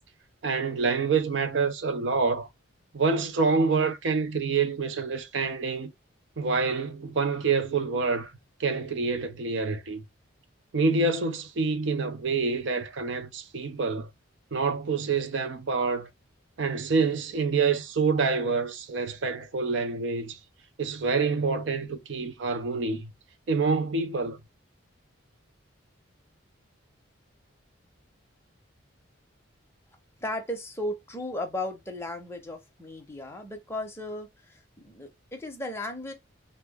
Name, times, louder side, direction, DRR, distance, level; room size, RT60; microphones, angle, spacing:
voice 1, 0.4-2.5 2.9-5.9 6.4-8.3 8.6-10.0 10.7-14.1 14.5-16.1 16.6-20.4 20.8-23.1 23.5-24.4, right 4 dB, 65° right, 0.4 m, -27 dB
voice 2, 30.2-36.1, left 1 dB, 10° left, 0.6 m, -35 dB
3.3 x 2.0 x 3.3 m
head